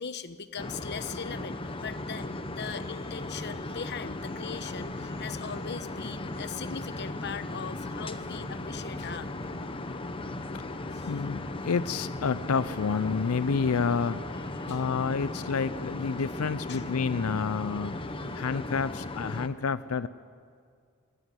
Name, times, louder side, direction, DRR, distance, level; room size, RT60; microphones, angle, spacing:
voice 1, 0.0-9.3 10.9-11.2 14.6-14.8 16.7-16.9 18.1-18.4, left 6 dB, 50° left, 1.0 m, -40 dB
sound 1, 0.6-19.5, left 2 dB, 25° left, 0.9 m, -37 dB
voice 2, 4.5-5.3 6.3-6.5 8.3-18.1 18.3-20.1, left 5 dB, 90° left, 0.5 m, -31 dB
sound 2, 12.2-18.8, right 2 dB, 50° right, 1.1 m, -50 dB
22.0 x 19.0 x 9.6 m
head